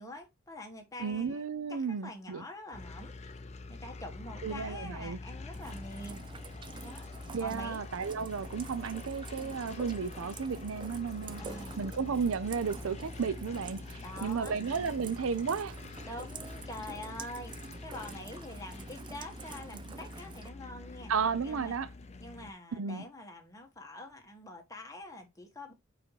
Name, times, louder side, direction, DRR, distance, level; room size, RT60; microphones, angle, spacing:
voice 1, 0.0-1.4 1.7-3.1 3.7-6.2 6.8-7.1 7.4-7.8 11.4-11.9 13.9-14.5 16.0-21.1 21.4-21.8 22.2-25.7, left 1 dB, 15° left, 1.3 m, -45 dB
voice 2, 1.0-2.4 4.4-5.2 7.3-11.4 11.8-15.8 21.1-21.9 22.8-23.0, right 5 dB, 85° right, 0.5 m, -33 dB
sound 1, 2.7-22.5, left 3 dB, 30° left, 0.6 m, -46 dB
Rain, 5.5-20.5, right 4 dB, 25° right, 0.4 m, -47 dB
5.0 x 4.8 x 4.6 m
head